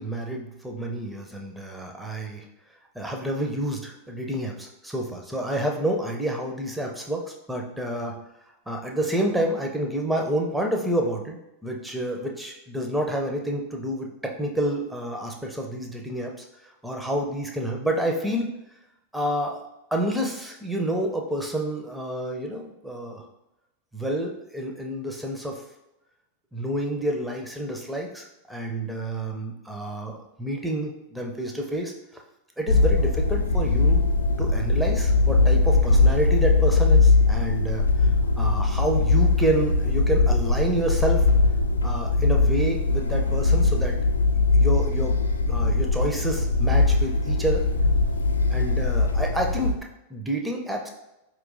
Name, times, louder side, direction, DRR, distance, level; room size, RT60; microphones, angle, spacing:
voice 1, 0.0-2.4 3.0-8.2 8.7-16.4 16.8-18.5 19.1-19.6 19.9-23.2 23.9-25.6 26.5-31.9 32.6-34.0 34.4-37.8 38.4-41.3 41.8-44.0 44.5-45.1 45.4-47.7 48.5-50.9, right 1 dB, 5° right, 1 dB, 0.5 m, -29 dB
sound 1, 32.7-49.7, left 3 dB, 75° left, 0.3 m, -21 dB
4.5 x 3.0 x 2.6 m, 0.91 s
figure-of-eight pair, 90°, 0 cm